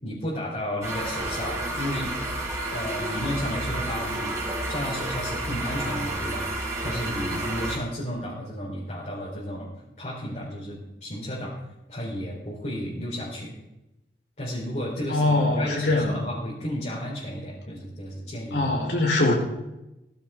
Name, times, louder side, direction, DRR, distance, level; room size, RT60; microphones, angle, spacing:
voice 1, 0.0-2.2 2.7-4.3 4.7-6.4 6.8-9.7 10.0-11.5 11.9-13.5 14.4-18.7, equal, 40° left, -7 dB, 4.0 m, -33 dB
sound 1, 0.8-7.8, right 1 dB, 20° right, 3.8 m, -30 dB
voice 2, 15.1-16.2 18.5-19.3, left 2 dB, 80° left, -1 dB, 4.1 m, -22 dB
17.5 x 15.0 x 3.7 m, 0.94 s
head